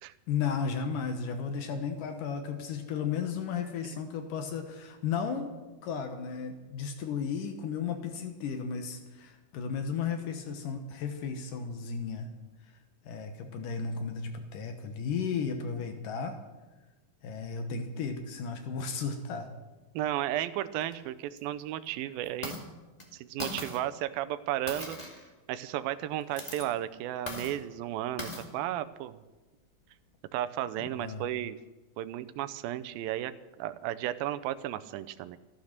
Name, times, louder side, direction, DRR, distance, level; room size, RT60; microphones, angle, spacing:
voice 1, 0.3-5.5 5.8-12.3 13.0-16.4 17.2-19.5 30.8-31.3, left 6 dB, 70° left, 6 dB, 2.6 m, -34 dB
voice 2, 19.9-22.5 23.1-25.0 25.5-29.2 30.3-31.6 32.0-35.4, right 13 dB, 90° right, 12 dB, 2.5 m, -34 dB
sound 1, 20.8-20.9 21.4-21.5 22.2-22.6 23.0-23.1 23.4-23.8 24.7-25.3 26.2-26.6 27.3-27.5 28.2-28.4, left 1 dB, 15° left, 1.6 m, -39 dB
14.5 x 13.0 x 6.6 m, 1.2 s
omnidirectional pair, 4.1 m